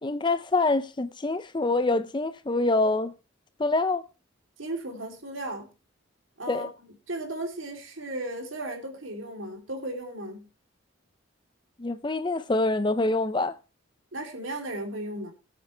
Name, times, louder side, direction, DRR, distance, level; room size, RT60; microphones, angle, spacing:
voice 1, 0.0-3.1 3.6-4.0 6.5-6.7 11.8-13.6, left 2 dB, 25° left, 0.5 m, -25 dB
voice 2, 4.6-5.7 6.4-10.5 14.1-15.3, right 1 dB, 80° right, 3.2 m, -35 dB
18.5 x 8.2 x 3.3 m
head